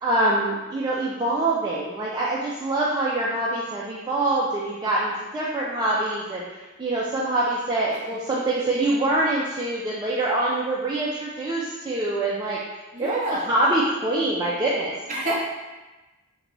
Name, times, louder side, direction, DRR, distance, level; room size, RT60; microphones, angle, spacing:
voice 1, 0.0-12.6 13.0-13.2 13.5-14.9, right 2 dB, 20° right, -6 dB, 0.3 m, -25 dB
voice 2, 12.9-13.5 15.1-15.3, right 1 dB, 35° right, -4 dB, 0.7 m, -28 dB
3.9 x 2.2 x 3.0 m, 1.1 s
head